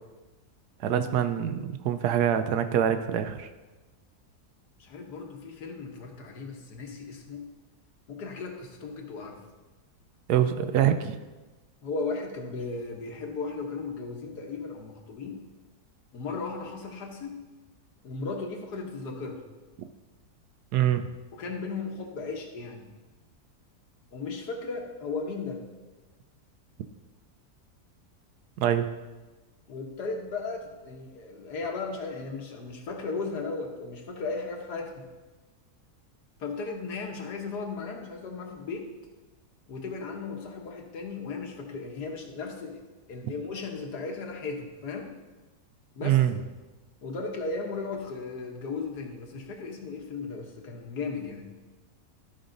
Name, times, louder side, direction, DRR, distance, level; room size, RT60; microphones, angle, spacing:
voice 1, 0.8-3.5 10.3-11.2 20.7-21.0 28.6-28.9 46.0-46.3, right 10 dB, 80° right, 9 dB, 1.2 m, -24 dB
voice 2, 4.8-7.5 8.1-9.4 11.8-15.4 16.1-17.4 18.0-19.4 21.3-22.9 24.1-25.6 29.7-35.1 36.4-38.9 39.7-42.8 43.1-45.1 45.9-46.2 47.0-51.5, left 4 dB, 75° left, 2 dB, 1.7 m, -36 dB
12.5 x 5.4 x 3.9 m, 1.2 s
omnidirectional pair, 1.7 m